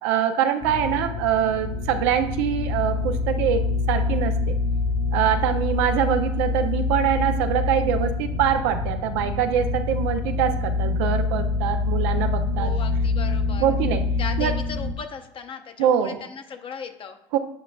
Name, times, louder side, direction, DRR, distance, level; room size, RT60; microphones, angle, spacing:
voice 1, 0.0-4.6 5.1-12.7 13.6-14.0 14.4-14.6 15.8-16.2 17.3-17.4, right 9 dB, 85° right, 7 dB, 0.6 m, -24 dB
sound 1, 0.6-14.9, left 3 dB, 70° left, 2.0 m, -26 dB
voice 2, 12.6-13.8 14.2-17.2, left 6 dB, 40° left, 6 dB, 0.8 m, -37 dB
8.6 x 5.2 x 2.3 m, 0.75 s
supercardioid pair, 90°, 13 cm